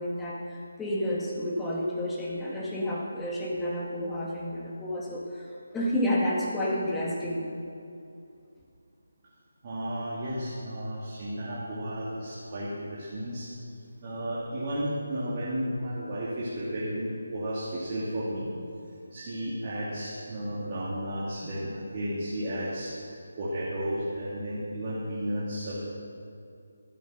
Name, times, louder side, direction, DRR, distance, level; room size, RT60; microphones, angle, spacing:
voice 1, 0.0-5.5 5.7-7.5, equal, 5° left, -5 dB, 1.9 m, -30 dB
voice 2, 9.6-13.5 14.0-18.5 19.1-22.9 23.4-25.8, equal, 35° right, -7 dB, 2.6 m, -33 dB
14.0 x 9.2 x 6.5 m, 2.5 s
figure-of-eight pair, 155°, 0 cm